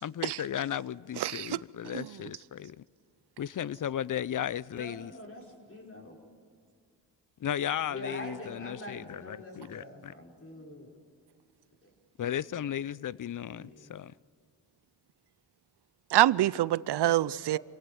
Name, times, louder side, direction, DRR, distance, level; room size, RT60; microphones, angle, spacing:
voice 1, 0.0-2.8 3.4-5.1 7.4-10.1 12.2-14.1, left 10 dB, 50° left, 0.6 m, -35 dB
voice 2, 4.7-6.3 7.9-10.9 11.8-11.9 13.6-13.9 17.2-17.6, left 1 dB, 35° left, 5.4 m, -44 dB
voice 3, 16.1-17.6, right 13 dB, 70° right, 0.6 m, -25 dB
27.0 x 18.0 x 7.1 m
cardioid pair, 70°, 41 cm